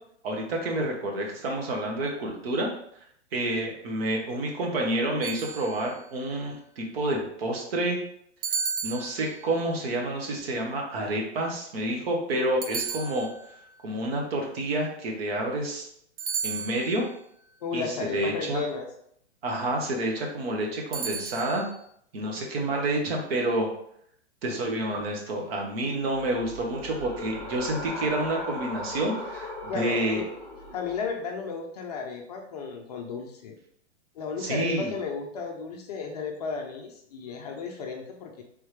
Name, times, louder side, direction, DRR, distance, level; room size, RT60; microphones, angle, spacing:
voice 1, 0.2-2.7 3.3-8.0 8.8-13.3 13.8-15.9 16.4-17.1 17.7-18.6 19.4-21.6 22.1-23.7 24.4-30.2 34.4-34.9, right 1 dB, 55° right, 0 dB, 1.2 m, -29 dB
sound 1, 5.2-6.1 8.4-9.7 12.6-13.7 16.2-17.1 20.9-21.7, right 6 dB, 35° right, 0.4 m, -34 dB
voice 2, 17.6-18.9 29.7-30.3 30.7-33.6 34.2-38.4, left 5 dB, 35° left, 2 dB, 0.4 m, -34 dB
sound 2, 26.0-31.1, left 1 dB, 10° left, 1.4 m, -38 dB
3.6 x 3.1 x 3.2 m, 0.69 s
hypercardioid pair, 145°, 35 cm